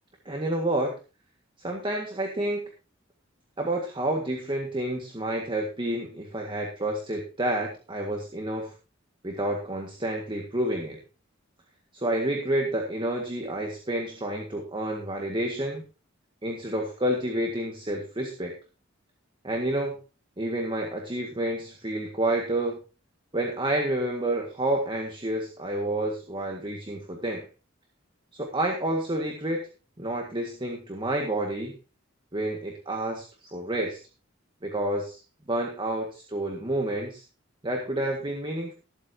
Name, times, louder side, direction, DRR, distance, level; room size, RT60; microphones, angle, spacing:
voice 1, 0.3-0.9 1.6-2.7 3.6-8.7 9.2-11.0 11.9-15.8 16.4-18.5 19.4-20.0 20.4-22.8 23.3-27.5 28.3-29.7 30.0-31.7 32.3-34.0 34.6-35.2 35.5-37.2 37.6-38.7, right 1 dB, 25° right, 1 dB, 1.8 m, -29 dB
20.0 x 8.2 x 2.8 m, 0.32 s
head